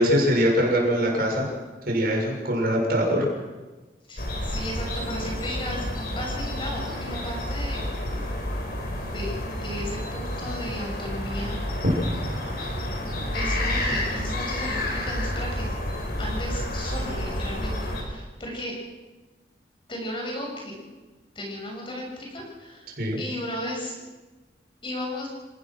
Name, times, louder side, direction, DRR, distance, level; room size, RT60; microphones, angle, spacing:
voice 1, 0.0-1.5 1.9-3.3 11.8-11.9 23.0-23.2, equal, 55° right, -1 dB, 7.0 m, -22 dB
voice 2, 4.1-7.8 9.1-11.6 13.3-15.7 16.2-18.7 19.9-20.8 21.3-22.9 23.2-24.0 24.8-25.3, left 1 dB, 30° left, -1 dB, 7.2 m, -35 dB
sound 1, 4.2-18.0, left 1 dB, 55° left, 5.2 m, -30 dB
29.5 x 18.0 x 6.4 m, 1.2 s
head